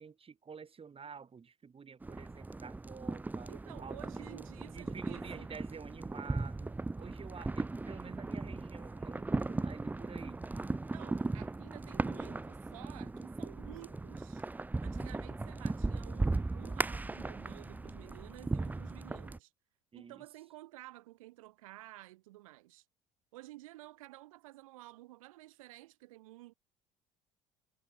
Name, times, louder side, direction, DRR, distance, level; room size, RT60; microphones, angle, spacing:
voice 1, 0.0-3.5 3.8-10.4 19.9-20.2, right 6 dB, 35° right, 3.2 m, -50 dB
sound 1, 2.0-19.4, right 3 dB, 10° right, 0.4 m, -37 dB
voice 2, 3.5-5.5 10.9-14.4 14.8-19.5 19.9-22.8 23.3-26.5, right 18 dB, 85° right, 1.4 m, -53 dB
hypercardioid pair, 65°, 17 cm